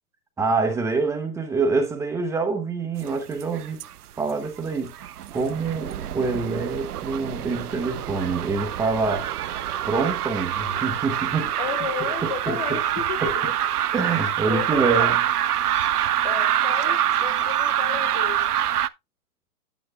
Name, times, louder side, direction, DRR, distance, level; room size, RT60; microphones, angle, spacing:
voice 1, 0.4-3.8 4.2-4.9 5.3-9.3 9.9-11.5 12.2-12.8 13.2-13.3 13.9-15.2, right 4 dB, 5° right, 0.9 m, -26 dB
sound 1, 3.0-3.9 4.2-18.9, right 11 dB, 85° right, 0.6 m, -26 dB
voice 2, 11.6-13.5 14.1-15.1 16.2-18.5, left 8 dB, 30° left, 0.5 m, -33 dB
9.3 x 9.2 x 2.3 m
hypercardioid pair, 140°, 44 cm